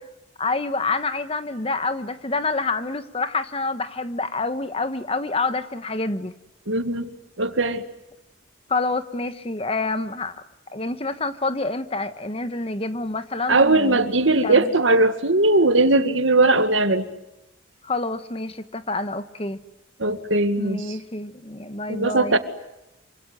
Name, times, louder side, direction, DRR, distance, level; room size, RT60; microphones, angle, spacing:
voice 1, 0.4-6.3 8.7-10.4 10.7-14.0 14.4-14.7 17.8-19.6 20.6-22.4, left 3 dB, 30° left, 11 dB, 1.3 m, -27 dB
voice 2, 6.7-7.1 7.4-7.8 13.5-17.1 20.0-21.0 21.9-22.4, right 2 dB, 85° right, 9 dB, 2.1 m, -19 dB
26.5 x 25.5 x 8.0 m, 0.89 s
head